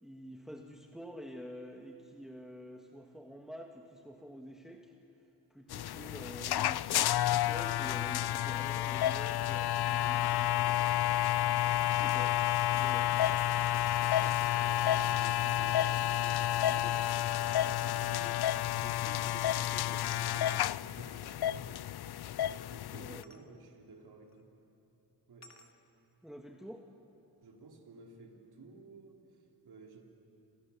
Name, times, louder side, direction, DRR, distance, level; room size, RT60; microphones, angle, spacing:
voice 1, 0.0-4.9 5.5-11.1 11.8-12.4 12.7-13.2 22.9-23.3 26.2-26.9, equal, ahead, 2 dB, 1.9 m, -48 dB
sound 1, 5.7-23.2, left 13 dB, 70° left, 0.5 m, -30 dB
voice 2, 14.0-17.2 17.7-21.9 22.6-24.5 25.3-25.5 27.4-30.0, right 3 dB, 70° right, 1 dB, 3.7 m, -52 dB
sound 2, 23.2-23.5 24.3-24.4 25.4-25.8, left 1 dB, 40° left, 2.4 m, -58 dB
29.0 x 28.0 x 7.2 m, 2.9 s
cardioid pair, 75°, 40 cm